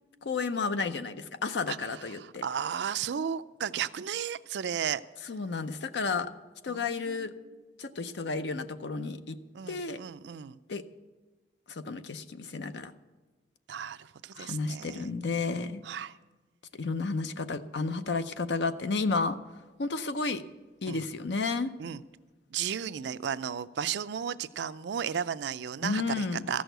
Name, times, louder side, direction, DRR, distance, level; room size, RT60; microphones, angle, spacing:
voice 1, 0.2-2.4 5.3-6.3 6.6-7.3 7.8-9.4 9.7-10.0 10.7-10.8 11.7-12.9 14.4-15.8 16.8-19.4 19.8-20.4 20.8-21.7 25.8-26.4, left 4 dB, 75° left, 11 dB, 0.6 m, -32 dB
voice 2, 1.7-5.0 6.7-7.2 9.5-10.6 13.7-15.1 15.8-16.2 20.9-21.0 21.8-22.0 22.5-26.6, right 8 dB, 75° right, 14 dB, 0.4 m, -34 dB
14.0 x 6.3 x 7.9 m, 1.3 s
head